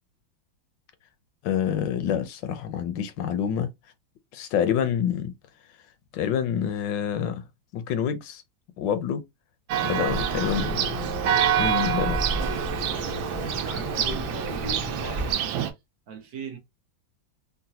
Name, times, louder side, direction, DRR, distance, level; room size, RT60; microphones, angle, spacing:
voice 1, 1.4-3.7 4.3-5.3 6.1-7.5 7.7-8.4 8.8-9.2 9.8-10.9 11.6-12.2, left 9 dB, 75° left, 1.2 m, -27 dB
Church bell, 9.7-15.7, right 9 dB, 80° right, 1.4 m, -27 dB
sound 1, 10.1-15.3, left 1 dB, 15° left, 0.5 m, -33 dB
voice 2, 11.5-15.6 16.1-16.6, right 6 dB, 65° right, 1.0 m, -42 dB
3.8 x 2.2 x 2.7 m
omnidirectional pair, 2.1 m